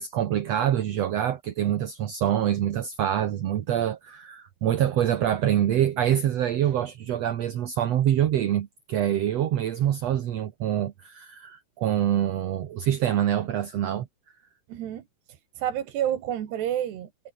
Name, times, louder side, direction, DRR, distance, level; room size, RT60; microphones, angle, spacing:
voice 1, 0.0-14.1, right 11 dB, 65° right, 1.7 m, -25 dB
voice 2, 14.7-15.0 15.3-17.3, right 11 dB, 90° right, 4.2 m, -30 dB
omnidirectional pair, 4.6 m